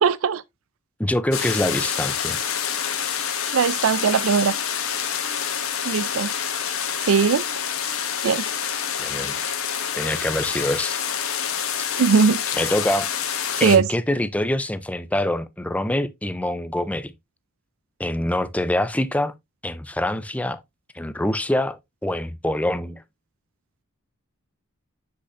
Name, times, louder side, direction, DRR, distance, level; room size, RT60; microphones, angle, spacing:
voice 1, 0.0-0.4 3.5-4.5 5.9-6.3 7.1-7.4 8.2-8.4 12.0-12.4 13.6-13.8, right 6 dB, 70° right, 0.4 m, -19 dB
voice 2, 1.0-2.4 9.0-9.5 9.9-11.0 12.6-13.1 13.6-17.1 18.0-19.3 19.6-20.6 20.9-23.0, left 1 dB, 5° left, 0.5 m, -25 dB
Rain sound, 1.3-13.8, left 8 dB, 80° left, 1.5 m, -27 dB
7.8 x 6.7 x 2.6 m
head